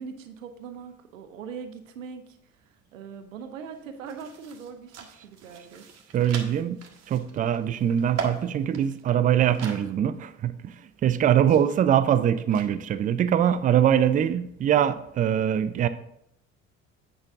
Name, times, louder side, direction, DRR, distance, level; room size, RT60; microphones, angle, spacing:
voice 1, 0.0-5.9, right 6 dB, 75° right, 0.8 m, -41 dB
sound 1, 3.0-3.1 3.4-9.9 10.2-10.3 11.1-12.7, right 6 dB, 40° right, 1.3 m, -40 dB
voice 2, 6.1-6.8 7.1-10.7 11.0-15.9, right 9 dB, 20° right, 0.4 m, -23 dB
8.7 x 5.4 x 3.5 m
figure-of-eight pair, 55°, 40 cm